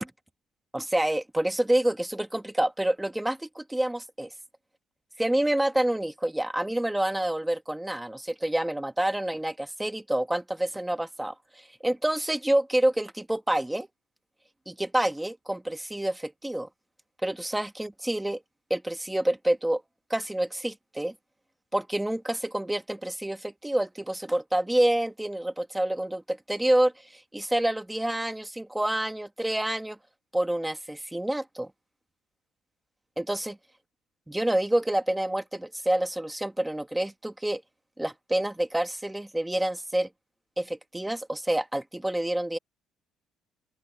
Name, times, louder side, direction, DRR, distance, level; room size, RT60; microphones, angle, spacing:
voice 1, 0.7-4.3 5.2-13.9 14.7-16.7 17.2-18.4 18.7-19.8 20.1-21.1 21.7-30.0 30.3-31.7 33.2-33.6 34.3-37.6 38.0-40.1 40.6-42.6, right 1 dB, 5° right, 1.5 m, -28 dB
open air
cardioid pair, 170°, 0 cm